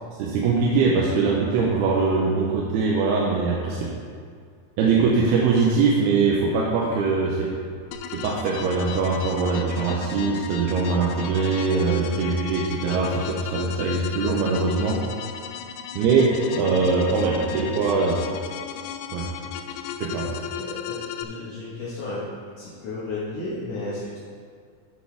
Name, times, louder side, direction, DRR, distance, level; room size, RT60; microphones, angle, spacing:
voice 1, 0.2-3.9 4.8-7.5 8.1-15.0 16.0-18.2 19.1-19.3 20.0-20.3, right 4 dB, 85° right, -3 dB, 2.7 m, -22 dB
sound 1, 7.9-21.2, left 8 dB, 85° left, 2.4 m, -35 dB
voice 2, 19.4-19.7 20.2-22.2 22.6-24.2, left 2 dB, 60° left, -9 dB, 1.8 m, -34 dB
11.5 x 6.9 x 3.4 m, 2.1 s
omnidirectional pair, 4.6 m